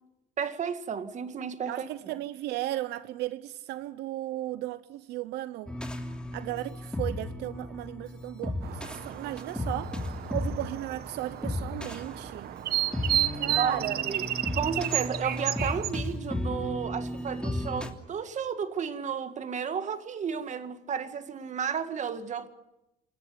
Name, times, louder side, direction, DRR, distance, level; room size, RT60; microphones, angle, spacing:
voice 1, 0.4-1.9 13.4-14.3 14.5-22.5, right 7 dB, 45° right, 2.0 m, -32 dB
voice 2, 1.7-5.7 6.3-12.5 13.3-14.1, right 15 dB, 85° right, 0.8 m, -35 dB
sound 1, 5.7-17.9, left 1 dB, 5° left, 2.9 m, -35 dB
sound 2, 8.6-15.9, right 12 dB, 65° right, 1.1 m, -32 dB
28.5 x 14.0 x 9.8 m
cardioid pair, 110°, 17 cm